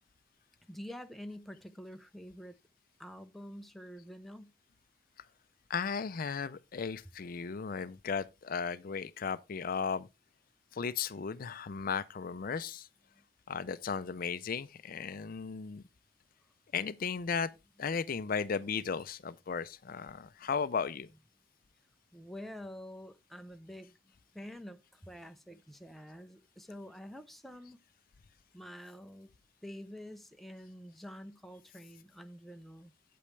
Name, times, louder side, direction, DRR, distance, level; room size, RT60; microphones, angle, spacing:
voice 1, 0.7-2.6 3.0-4.5 13.1-13.3 22.1-27.8 28.5-29.3 29.6-32.9, equal, ahead, 0.6 m, -47 dB
voice 2, 5.7-10.1 10.7-12.9 13.5-15.8 16.7-17.5 17.8-21.1, left 6 dB, 50° left, 0.5 m, -35 dB
8.6 x 8.5 x 3.2 m
head